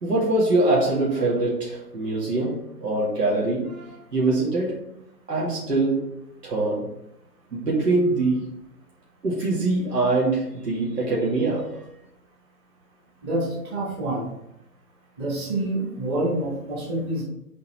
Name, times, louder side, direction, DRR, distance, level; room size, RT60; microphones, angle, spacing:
voice 1, 0.0-4.8 5.3-6.1 6.4-6.9 7.5-8.4 9.2-11.8, right 2 dB, 85° right, -5 dB, 2.2 m, -23 dB
voice 2, 13.2-14.3 15.2-17.2, right 1 dB, 15° right, -4 dB, 1.2 m, -27 dB
5.6 x 4.2 x 4.1 m, 0.84 s
hypercardioid pair, 155°, 46 cm